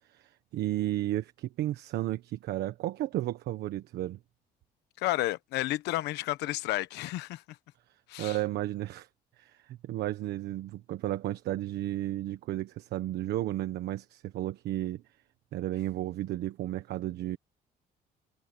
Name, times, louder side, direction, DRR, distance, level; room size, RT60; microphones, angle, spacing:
voice 1, 0.1-4.2 8.2-9.1 9.4-15.0 15.5-17.4, right 14 dB, 75° right, 1.4 m, -33 dB
voice 2, 5.0-7.6 8.1-8.4, left 17 dB, 85° left, 1.1 m, -31 dB
cardioid pair, 110°, 17 cm